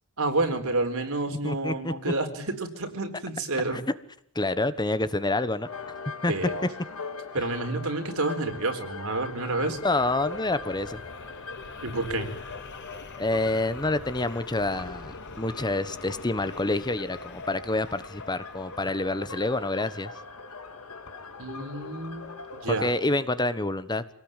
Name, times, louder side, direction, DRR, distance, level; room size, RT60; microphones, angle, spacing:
voice 1, 0.2-3.8 6.3-6.6 7.3-9.8 11.8-12.3 21.4-22.3 22.6-22.9, right 2 dB, 75° right, 5 dB, 4.3 m, -29 dB
voice 2, 1.4-2.1 3.7-3.8 4.3-5.7 6.2-6.3 9.8-11.0 13.2-20.1 22.7-24.0, left 2 dB, 20° left, 13 dB, 1.1 m, -27 dB
sound 1, 5.7-22.8, left 4 dB, 80° left, 2.3 m, -41 dB
sound 2, 8.7-20.0, left 3 dB, 55° left, 4.7 m, -48 dB
26.5 x 18.5 x 9.1 m, 0.74 s
head